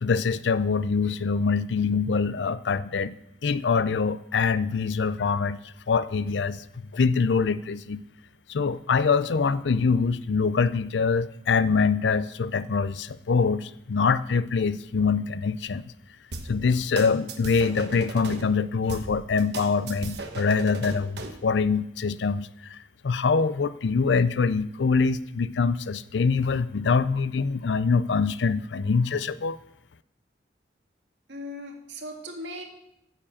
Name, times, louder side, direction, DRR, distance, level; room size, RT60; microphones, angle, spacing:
voice 1, 0.0-3.1 3.4-5.6 5.9-8.0 8.5-15.8 16.5-22.8 23.0-29.6, left 5 dB, 80° left, 16 dB, 0.5 m, -24 dB
sound 1, 16.3-18.4 18.9-21.4, right 3 dB, 65° right, 1.2 m, -37 dB
voice 2, 31.3-32.6, left 1 dB, 90° right, 2 dB, 2.0 m, -38 dB
9.8 x 7.2 x 7.3 m, 0.81 s
head